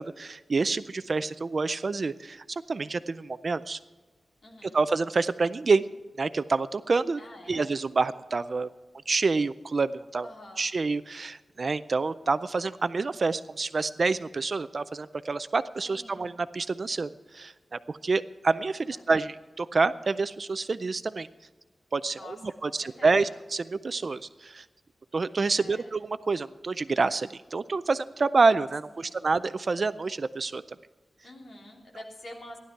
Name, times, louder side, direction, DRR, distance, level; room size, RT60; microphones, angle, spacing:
voice 1, 0.0-3.8 4.6-5.8 6.2-7.2 7.5-8.7 9.1-10.3 10.6-21.3 21.9-22.4 22.6-24.7 25.1-30.6, right 4 dB, 40° right, 14 dB, 0.4 m, -27 dB
voice 2, 4.4-4.8 7.2-7.7 10.2-10.7 15.8-16.3 18.8-19.1 22.1-23.4 25.5-25.9 28.9-29.3 31.2-32.6, left 1 dB, 45° left, -1 dB, 3.1 m, -47 dB
15.5 x 11.5 x 4.6 m, 1.2 s
wide cardioid pair, 165°, 0 cm